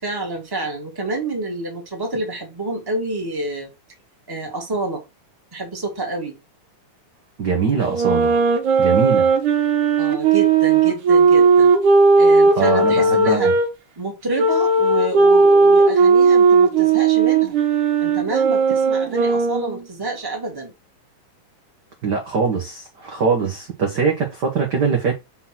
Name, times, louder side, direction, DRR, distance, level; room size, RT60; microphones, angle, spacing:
voice 1, 0.0-3.7 4.3-5.0 5.5-6.4 10.0-11.7 12.2-13.5 13.9-17.5 18.0-20.7, right 2 dB, 10° right, 1.5 m, -28 dB
voice 2, 7.4-8.4 8.8-9.3 12.5-13.5 22.0-25.1, right 5 dB, 55° right, 1.2 m, -22 dB
sound 1, 7.8-13.7 14.4-19.8, right 4 dB, 75° right, 2.5 m, -16 dB
5.6 x 4.0 x 6.1 m
omnidirectional pair, 3.8 m